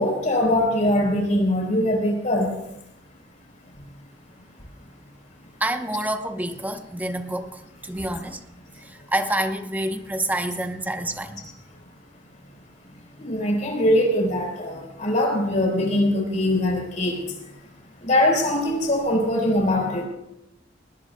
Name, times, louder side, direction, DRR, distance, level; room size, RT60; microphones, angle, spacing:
voice 1, 0.0-2.5 7.9-8.0 13.2-17.6 18.0-20.1, left 1 dB, 40° left, 1 dB, 4.0 m, -22 dB
voice 2, 5.6-8.4 8.7-11.4, right 1 dB, 10° right, 7 dB, 0.8 m, -28 dB
19.5 x 19.5 x 2.2 m, 0.86 s
head